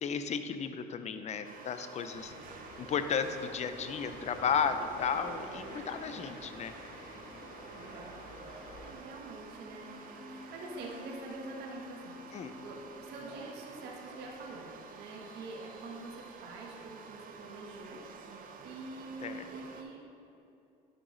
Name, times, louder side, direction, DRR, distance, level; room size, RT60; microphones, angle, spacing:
voice 1, 0.0-2.3 2.8-6.7 12.3-12.5 19.2-19.4, left 6 dB, 40° left, 9 dB, 0.5 m, -34 dB
sound 1, 1.4-19.8, right 5 dB, 55° right, 0.7 m, -49 dB
sound 2, 2.1-8.9, left 2 dB, 80° left, 1.4 m, -49 dB
voice 2, 7.7-8.2 8.8-12.2 12.6-20.0, right 2 dB, 80° right, 0 dB, 1.3 m, -46 dB
sound 3, 9.4-15.3, left 3 dB, 65° left, 1.7 m, -52 dB
10.0 x 4.8 x 3.8 m, 2.8 s
cardioid pair, 110°, 17 cm